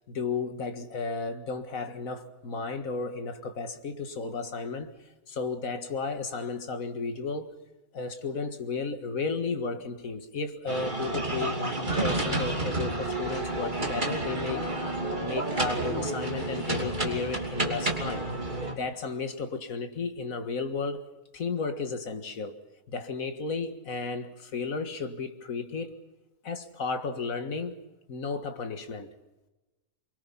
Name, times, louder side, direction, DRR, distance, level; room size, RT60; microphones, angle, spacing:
voice 1, 0.1-4.9 5.3-7.5 7.9-11.6 12.0-14.6 15.2-18.3 18.8-21.1 21.3-22.6 22.9-25.9 26.4-27.8 28.1-29.1, left 4 dB, 60° left, 2.1 m, -33 dB
sound 1, 10.7-18.7, right 2 dB, 30° right, 3.0 m, -30 dB
24.0 x 23.5 x 5.7 m
omnidirectional pair, 1.6 m